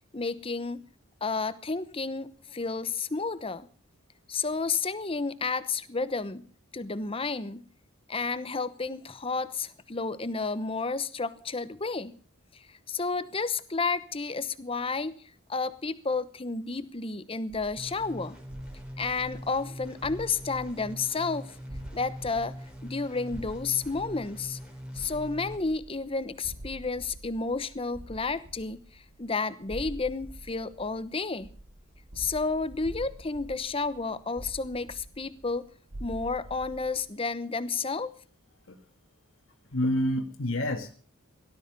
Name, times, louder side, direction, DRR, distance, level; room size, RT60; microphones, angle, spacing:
voice 1, 0.1-0.8 1.2-3.7 4.3-6.5 6.7-7.6 8.1-12.2 12.5-15.2 15.5-18.4 19.0-21.5 21.9-22.5 22.8-24.6 24.9-31.5 32.2-35.6 36.0-38.1, left 4 dB, 25° left, 14 dB, 0.9 m, -31 dB
sound 1, 17.5-37.1, right 1 dB, 85° right, 5.4 m, -46 dB
sound 2, 17.8-25.6, equal, 5° right, 3.7 m, -42 dB
voice 2, 39.7-40.9, left 1 dB, 65° left, 5 dB, 1.8 m, -28 dB
17.5 x 13.0 x 5.4 m, 0.43 s
head